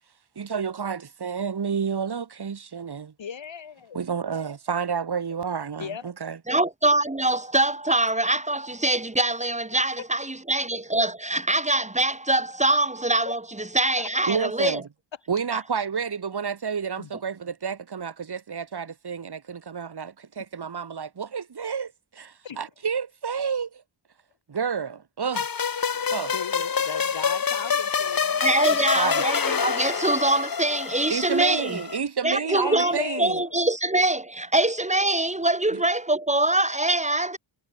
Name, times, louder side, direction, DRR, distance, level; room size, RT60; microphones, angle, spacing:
voice 1, 0.4-3.1 3.9-6.4 14.3-14.8 15.3-23.8 24.5-25.5 26.1-26.3 29.0-29.2 31.1-33.4 35.7-35.8, right 6 dB, 50° right, 3.4 m, -30 dB
voice 2, 3.2-4.0 5.8-6.1 9.7-10.0 13.2-13.3 14.0-14.1 17.0-17.1 22.4-22.6 26.2-28.4 32.5-33.6, left 7 dB, 65° left, 2.9 m, -37 dB
voice 3, 6.5-14.8 28.4-31.8 32.2-37.4, right 2 dB, 15° right, 2.3 m, -24 dB
sound 1, 25.3-32.0, left 6 dB, 45° left, 1.6 m, -26 dB
wide cardioid pair, 140°, 49 cm